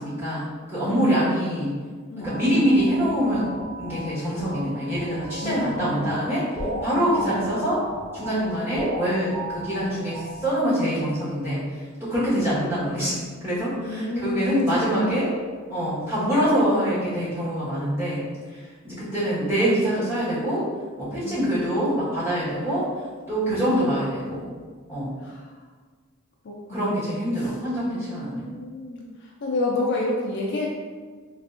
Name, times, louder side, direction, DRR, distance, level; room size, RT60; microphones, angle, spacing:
voice 1, 0.0-1.7 2.2-6.4 6.8-7.8 8.1-11.6 12.0-13.1 13.4-15.3 15.7-18.2 18.8-20.6 21.0-22.9 23.3-24.5 24.9-25.1 26.7-28.4, equal, 10° right, -12 dB, 1.2 m, -24 dB
voice 2, 0.9-1.5 2.1-2.7 5.4-6.2 6.9-7.5 12.3-12.6 13.9-15.0 21.2-21.4 23.5-23.8 25.2-25.4 26.4-27.0 27.4-27.5 28.1-29.1 29.4-30.7, left 2 dB, 50° left, -3 dB, 0.4 m, -30 dB
sound 1, 2.2-10.9, right 1 dB, 10° left, 0.8 m, -35 dB
3.5 x 2.4 x 2.4 m, 1.5 s
head